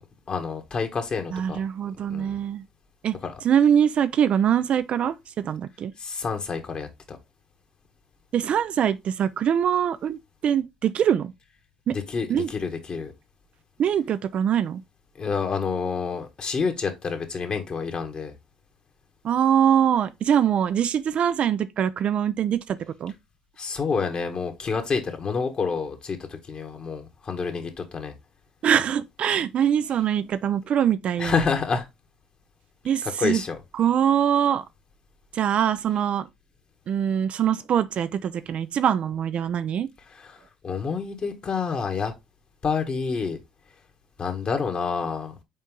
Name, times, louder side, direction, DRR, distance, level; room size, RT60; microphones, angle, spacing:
voice 1, 0.3-1.6 2.1-2.4 3.2-3.3 6.0-7.2 11.9-13.1 15.2-18.3 23.6-28.1 31.2-31.9 33.2-33.6 40.2-40.4 40.6-42.1 42.6-43.4 44.2-45.3, left 5 dB, 45° left, 1.9 m, -28 dB
voice 2, 1.3-2.6 3.0-3.2 3.4-5.9 8.3-11.3 11.9-12.0 12.3-12.5 13.8-14.8 19.2-23.1 28.6-31.4 32.8-33.4 33.7-34.6 35.3-36.3 36.9-39.9, right 9 dB, 55° right, 0.5 m, -23 dB
5.5 x 4.5 x 3.8 m
supercardioid pair, 65°, 2 cm